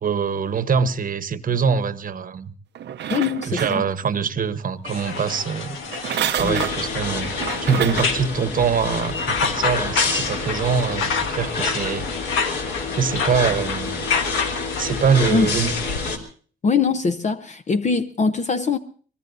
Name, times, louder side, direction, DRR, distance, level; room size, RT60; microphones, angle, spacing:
voice 1, 0.0-2.5 3.5-5.8 6.1-7.3 7.6-12.1 12.9-14.0 14.8-15.7, right 6 dB, 45° right, 13 dB, 1.1 m, -23 dB
sound 1, 2.7-4.3 5.8-8.3 8.8-8.9, right 10 dB, 60° right, 0.7 m, -29 dB
voice 2, 3.1-3.8 6.4-6.6 15.3-15.5 16.6-18.8, left 5 dB, 35° left, 10 dB, 0.7 m, -22 dB
sound 2, 4.8-16.1, left 5 dB, 80° left, 1.6 m, -28 dB
sound 3, 6.4-16.2, left 3 dB, 55° left, 3.2 m, -29 dB
24.0 x 19.5 x 2.7 m, 0.42 s
cardioid pair, 90°, 20 cm